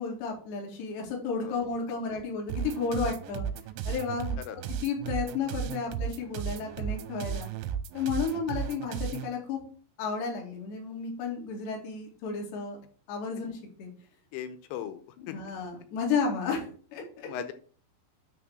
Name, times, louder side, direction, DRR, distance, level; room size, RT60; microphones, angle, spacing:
voice 1, 0.0-3.5 3.9-4.4 4.8-7.5 7.9-9.6 10.0-12.8 13.1-13.9 15.2-16.7 16.9-17.3, left 5 dB, 60° left, 0 dB, 4.0 m, -32 dB
voice 2, 1.4-1.7 4.4-4.6 8.2-8.5 14.3-15.5 17.2-17.5, left 9 dB, 85° left, 9 dB, 3.3 m, -39 dB
sound 1, 2.5-9.3, right 8 dB, 85° right, 2.7 m, -35 dB
9.9 x 3.6 x 6.2 m, 0.43 s
omnidirectional pair, 5.8 m